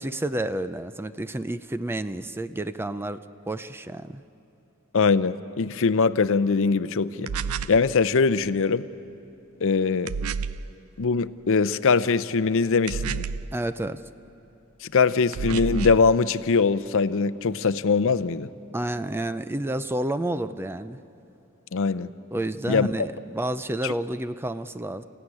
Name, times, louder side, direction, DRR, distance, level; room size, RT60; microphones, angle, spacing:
voice 1, 0.0-3.2 3.5-4.2 13.5-14.0 18.7-21.0 22.3-25.0, right 1 dB, 10° right, 0.5 m, -30 dB
voice 2, 4.9-7.3 7.7-8.9 9.6-10.1 11.0-13.2 14.9-18.5 21.7-22.1 22.7-23.1 23.8-23.9, left 4 dB, 65° left, 0.6 m, -22 dB
sound 1, 7.3-7.8 10.1-10.7 12.9-13.5 15.3-16.1, right 5 dB, 80° right, 0.5 m, -29 dB
29.5 x 15.0 x 9.8 m
head